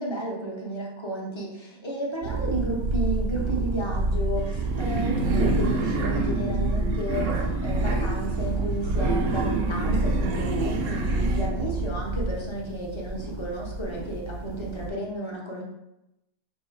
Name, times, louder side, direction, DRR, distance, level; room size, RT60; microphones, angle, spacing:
voice 1, 0.0-15.6, right 1 dB, 30° left, -3 dB, 0.5 m, -32 dB
sound 1, 2.2-14.9, right 2 dB, 60° right, 0.7 m, -28 dB
sound 2, 4.4-11.5, right 3 dB, 80° right, 1.0 m, -29 dB
3.3 x 2.7 x 4.5 m, 0.88 s
omnidirectional pair, 1.6 m